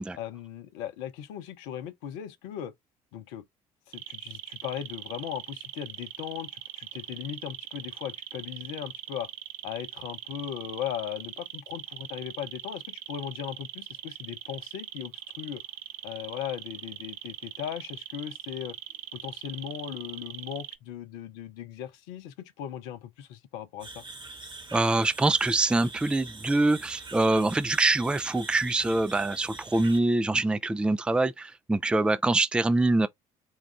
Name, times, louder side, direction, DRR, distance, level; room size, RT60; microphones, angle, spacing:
voice 1, 0.1-2.7 3.1-3.4 3.9-9.3 9.6-15.6 16.0-18.8 19.1-24.0, left 10 dB, 65° left, 0.7 m, -38 dB
sound 1, 3.9-20.8, right 13 dB, 60° right, 0.5 m, -41 dB
sound 2, 23.8-30.0, right 3 dB, 25° right, 1.1 m, -44 dB
voice 2, 24.7-33.1, right 2 dB, 5° right, 0.4 m, -24 dB
4.7 x 2.4 x 3.2 m
figure-of-eight pair, 50°, 18 cm